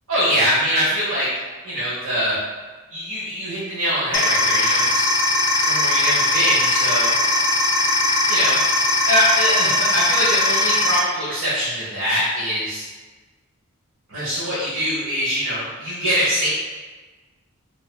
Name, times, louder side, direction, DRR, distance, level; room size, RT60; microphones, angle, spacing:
voice 1, 0.1-1.3 1.6-2.4 2.9-5.1 5.6-7.1 8.3-8.6 9.1-12.8 14.1-16.5, equal, 80° right, -10 dB, 0.9 m, -23 dB
sound 1, 4.1-11.0, left 2 dB, 60° left, 0.4 m, -19 dB
4.0 x 2.4 x 2.2 m, 1.3 s
head